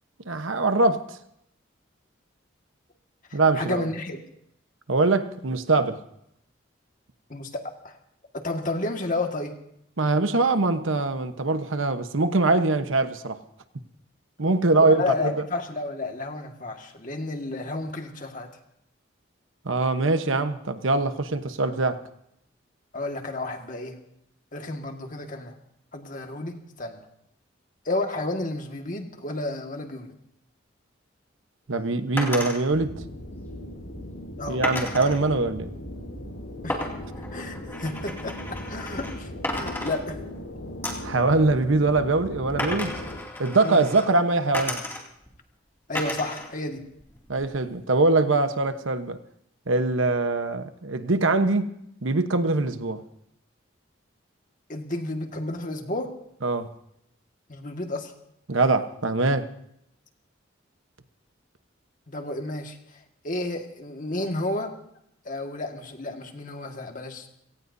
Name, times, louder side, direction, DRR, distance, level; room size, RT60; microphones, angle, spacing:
voice 1, 0.3-1.2 3.3-3.9 4.9-6.0 10.0-13.4 14.4-15.3 19.6-22.0 31.7-32.9 34.5-35.7 41.0-43.0 43.4-44.8 47.3-49.2 49.7-51.7 52.0-53.0 56.4-56.7 58.5-59.5, right 3 dB, 90° right, 1.1 m, -23 dB
voice 2, 3.3-4.2 7.3-8.0 8.3-9.5 14.7-18.5 22.9-24.0 24.5-25.5 25.9-27.0 27.9-30.1 34.4-34.6 36.6-36.9 37.3-40.2 43.6-43.8 45.9-46.8 54.7-56.1 57.5-58.1 62.1-62.8 63.2-64.7 65.3-67.3, left 2 dB, 45° left, 1.8 m, -31 dB
sound 1, 32.2-32.6 34.6-35.2 36.7-39.2 39.4-40.4 40.8-41.2 42.6-44.1 44.5-45.3 45.9-46.5 46.8-47.6, left 1 dB, 10° left, 2.5 m, -33 dB
sound 2, 32.7-43.2, left 1 dB, 80° left, 7.7 m, -38 dB
29.5 x 18.0 x 2.7 m
head